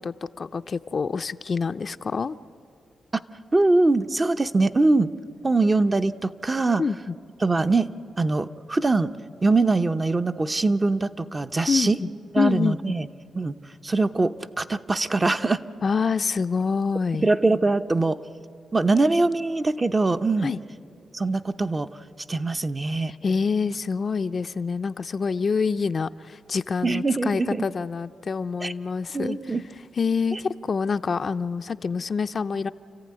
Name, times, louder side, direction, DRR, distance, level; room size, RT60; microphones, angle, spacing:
voice 1, 0.0-2.4 6.8-7.0 11.7-12.1 12.4-12.9 15.8-17.3 20.4-20.6 23.1-29.5 30.0-32.7, left 5 dB, 50° left, 10 dB, 0.5 m, -26 dB
voice 2, 3.5-5.1 5.4-6.8 7.4-9.1 9.4-12.0 12.3-13.1 13.3-13.6 13.8-15.6 17.2-18.2 18.7-20.5 21.1-21.9 22.3-23.1 26.8-27.6 28.6-28.7 29.1-29.6 30.3-30.4, right 3 dB, 25° right, 9 dB, 0.7 m, -22 dB
29.5 x 14.5 x 9.7 m, 2.5 s
cardioid pair, 80°, 0 cm